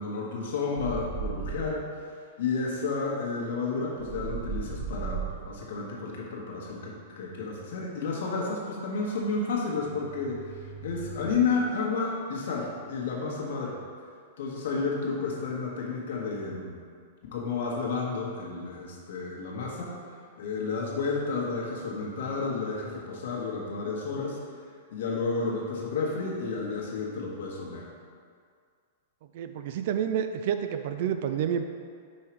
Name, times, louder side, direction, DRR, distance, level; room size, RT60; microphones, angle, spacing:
voice 1, 0.0-13.8 14.4-16.8 17.2-20.0 20.4-24.4 24.9-27.9, left 4 dB, 60° left, -3 dB, 1.4 m, -31 dB
sound 1, 0.8-1.8 4.0-5.6 9.8-11.4, right 6 dB, ahead, 0.8 m, -37 dB
voice 2, 29.3-31.7, right 8 dB, 45° right, 8 dB, 0.3 m, -29 dB
5.5 x 4.9 x 4.6 m, 2.1 s
supercardioid pair, 175°, 0 cm